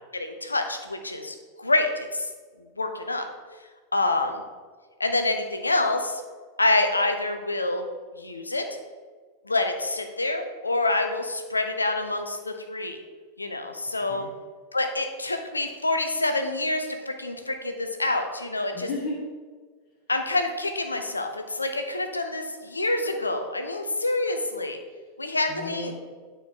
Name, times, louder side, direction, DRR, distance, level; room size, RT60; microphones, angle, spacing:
voice 1, 0.1-2.3 2.8-3.2 3.9-4.4 5.0-6.2 6.6-7.8 8.2-8.7 9.4-13.0 13.4-14.3 14.7-18.9 20.1-24.8 25.2-25.9, left 2 dB, 80° left, 5 dB, 0.7 m, -27 dB
voice 2, 13.8-14.3 18.7-19.2 24.8-25.9, left 2 dB, 40° left, -5 dB, 1.4 m, -36 dB
9.2 x 4.7 x 3.8 m, 1.5 s
figure-of-eight pair, 90°, 0 cm